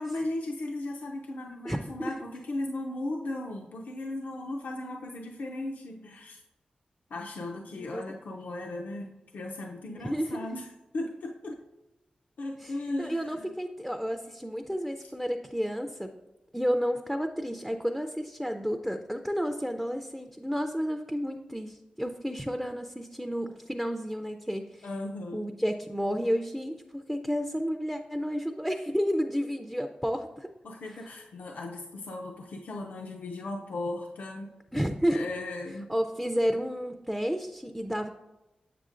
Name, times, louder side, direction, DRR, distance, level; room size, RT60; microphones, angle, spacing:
voice 1, 0.0-6.4 7.1-11.6 12.4-13.5 15.0-15.1 24.8-25.5 30.6-34.6 35.1-35.9, left 2 dB, 80° left, 1 dB, 0.5 m, -37 dB
voice 2, 1.6-2.1 7.7-8.0 9.9-10.5 12.6-12.7 13.0-16.1 16.5-24.9 25.3-30.5 34.7-35.3 35.9-38.1, equal, 5° right, 6 dB, 0.4 m, -31 dB
7.1 x 6.6 x 2.5 m, 1.0 s
wide cardioid pair, 70°, 3 cm